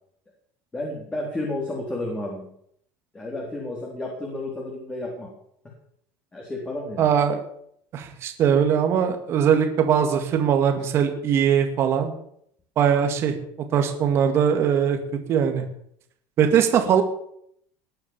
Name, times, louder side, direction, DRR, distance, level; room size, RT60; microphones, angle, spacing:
voice 1, 0.7-2.5 3.1-5.3 6.3-7.1, left 1 dB, 15° left, -2 dB, 4.1 m, -31 dB
voice 2, 7.0-7.4 7.9-12.1 12.8-13.3 13.7-15.0 15.3-15.6 16.4-17.0, right 8 dB, 40° right, 5 dB, 2.4 m, -20 dB
19.5 x 9.6 x 7.3 m, 0.69 s
cardioid pair, 150°, 7 cm